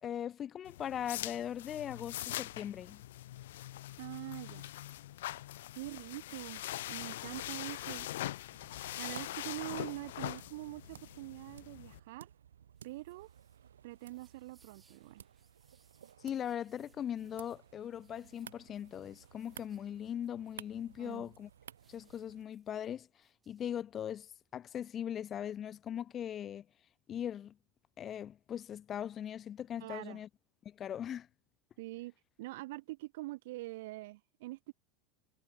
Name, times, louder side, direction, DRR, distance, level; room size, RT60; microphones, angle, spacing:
voice 1, 0.0-3.0 16.2-21.5 21.9-26.7 27.1-27.6 28.0-30.3 30.6-31.3, left 9 dB, 35° left, 0.7 m, -40 dB
sound 1, 0.6-12.0, left 14 dB, 70° left, 0.7 m, -43 dB
voice 2, 4.0-4.7 5.8-6.6 6.9-8.1 9.0-12.3 12.8-13.3 13.8-15.3 21.0-21.3 29.8-30.2 31.8-34.7, right 19 dB, 65° right, 0.6 m, -44 dB
sound 2, 8.5-22.5, right 9 dB, 80° right, 3.5 m, -56 dB
sound 3, 12.7-24.9, right 5 dB, 20° right, 5.7 m, -74 dB
hypercardioid pair, 85°, 0 cm